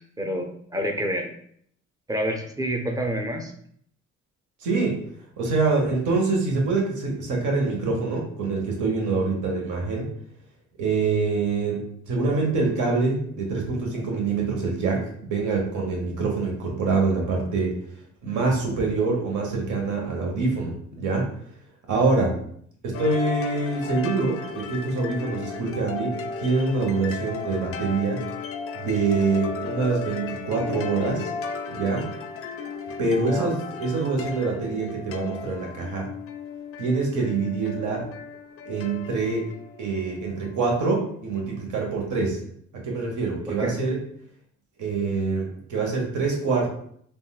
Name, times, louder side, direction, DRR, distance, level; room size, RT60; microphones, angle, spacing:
voice 1, 0.2-1.3 2.1-3.5 33.2-33.6 43.5-43.8, equal, 10° right, 3 dB, 0.5 m, -28 dB
voice 2, 4.6-5.0 5.4-10.1 10.8-17.8 18.2-21.3 21.9-22.4 22.8-28.2 28.7-31.3 31.7-32.1 33.0-36.1 36.8-38.1 38.7-39.5 39.8-42.4 42.7-44.0 44.8-46.7, right 3 dB, 75° right, 1 dB, 1.0 m, -25 dB
sound 1, 22.9-40.8, left 5 dB, 50° left, 0.4 m, -35 dB
3.6 x 2.3 x 2.3 m, 0.64 s
cardioid pair, 90°, 30 cm